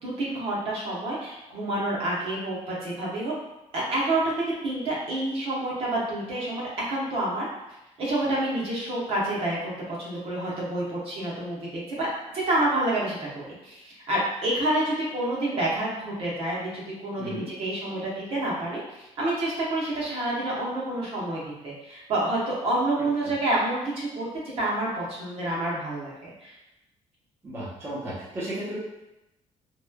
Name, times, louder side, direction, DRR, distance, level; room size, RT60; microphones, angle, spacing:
voice 1, 0.0-3.3 3.7-6.6 6.9-7.5 8.0-12.1 12.3-24.3 24.6-26.5, right 1 dB, 50° right, -5 dB, 0.8 m, -28 dB
voice 2, 27.4-28.8, right 1 dB, 20° right, -9 dB, 0.6 m, -34 dB
3.0 x 2.2 x 2.2 m, 0.93 s
cardioid pair, 160°, 12 cm